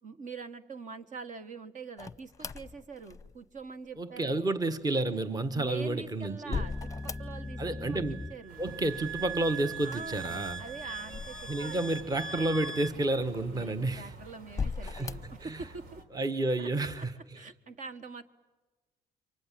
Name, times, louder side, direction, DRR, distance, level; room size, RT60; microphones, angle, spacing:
voice 1, 0.0-4.5 5.5-8.0 8.3-8.6 9.8-11.9 13.5-16.0 16.6-18.2, right 4 dB, 50° right, 1.5 m, -44 dB
sound 1, 2.0-3.6 5.5-7.7 7.9-8.7 9.8-11.9 12.5-12.6 13.4-14.0 14.5-15.4, left 5 dB, 20° left, 0.9 m, -39 dB
voice 2, 4.0-6.7 7.6-8.2 8.6-10.6 11.5-14.1 14.8-15.6 16.1-17.4, right 2 dB, 20° right, 1.4 m, -31 dB
sound 2, 6.5-12.9, right 2 dB, 5° left, 1.5 m, -40 dB
sound 3, 8.5-16.0, right 2 dB, 65° right, 3.6 m, -49 dB
28.5 x 24.5 x 7.6 m
cardioid pair, 110°, 17 cm